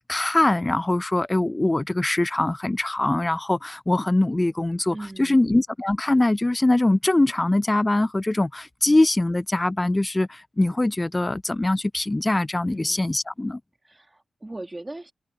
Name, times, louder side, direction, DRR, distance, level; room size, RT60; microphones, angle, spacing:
voice 1, 0.0-13.6, left 2 dB, 20° left, 0.4 m, -22 dB
voice 2, 4.9-5.4 12.6-13.0 13.8-15.1, right 2 dB, 20° right, 1.5 m, -39 dB
cardioid pair, 65°, 0 cm